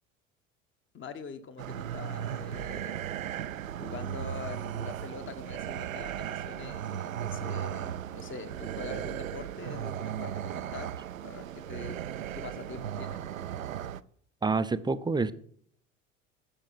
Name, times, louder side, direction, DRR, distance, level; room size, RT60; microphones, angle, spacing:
voice 1, 0.9-3.2 3.7-10.9 11.2-12.0 12.3-13.2, left 6 dB, 30° left, 10 dB, 1.4 m, -44 dB
sound 1, 1.6-14.0, right 10 dB, 85° right, 0.5 m, -36 dB
voice 2, 14.4-15.3, right 4 dB, 10° right, 13 dB, 0.6 m, -27 dB
15.5 x 6.5 x 5.7 m, 0.62 s
figure-of-eight pair, 70°, 39 cm